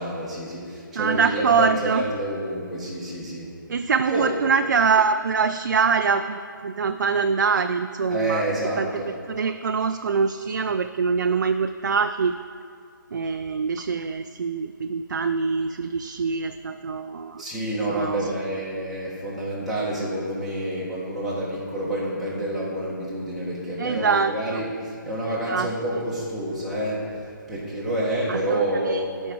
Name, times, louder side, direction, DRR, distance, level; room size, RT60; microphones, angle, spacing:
voice 1, 0.0-3.5 4.1-4.3 8.1-9.1 17.4-29.1, right 1 dB, ahead, -10 dB, 1.8 m, -28 dB
voice 2, 1.0-2.1 3.7-8.4 8.8-8.9 9.3-12.4 13.1-17.4 17.9-18.3 23.8-24.6 25.3-25.7 28.3-29.0, right 5 dB, 60° right, 8 dB, 0.4 m, -24 dB
13.0 x 5.3 x 4.8 m, 2.2 s
figure-of-eight pair, 155°, 11 cm